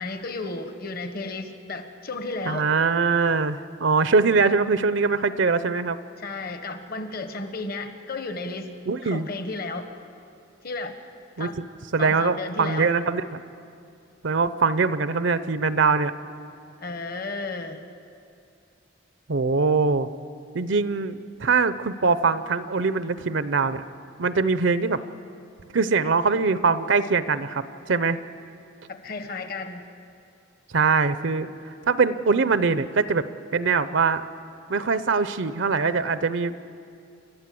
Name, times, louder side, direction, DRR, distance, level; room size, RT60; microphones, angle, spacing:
voice 1, 0.0-2.7 6.2-8.7 9.0-9.9 10.6-11.0 11.4-11.6 12.0-12.9 16.8-17.9 28.9-29.9, left 3 dB, 45° left, 7 dB, 1.2 m, -33 dB
voice 2, 2.5-6.0 8.9-9.3 11.4-11.5 11.9-13.4 14.2-16.1 19.3-20.1 20.5-23.8 24.2-25.0 25.7-28.2 30.7-31.5 31.9-33.2 33.5-34.2 34.7-36.6, right 4 dB, 65° right, 13 dB, 0.6 m, -22 dB
29.5 x 13.0 x 7.7 m, 2.5 s
head